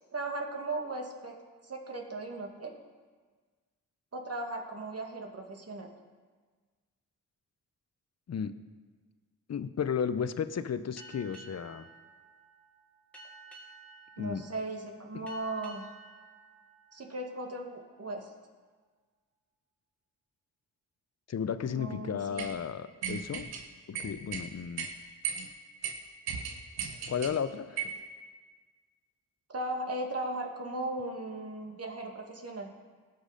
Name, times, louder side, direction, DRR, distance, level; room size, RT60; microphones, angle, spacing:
voice 1, 0.1-1.4 1.6-2.8 4.1-5.9 14.2-15.9 16.9-18.3 21.6-22.5 29.5-32.7, right 2 dB, 40° right, 2 dB, 2.2 m, -37 dB
voice 2, 9.5-11.8 14.2-14.4 15.1-15.3 21.3-23.5 23.9-24.9 27.1-27.9, left 7 dB, 45° left, 13 dB, 0.8 m, -34 dB
Boat Water vehicle, 11.0-18.0, right 3 dB, 5° left, 2.7 m, -54 dB
sound 1, 22.4-22.5 23.0-23.6 23.9-24.5 24.8-24.9 25.2-25.5 25.8-25.9 26.3-27.3 27.8-28.0, right 7 dB, 90° right, 1.1 m, -35 dB
18.5 x 6.2 x 5.1 m, 1.5 s
supercardioid pair, 50°, 37 cm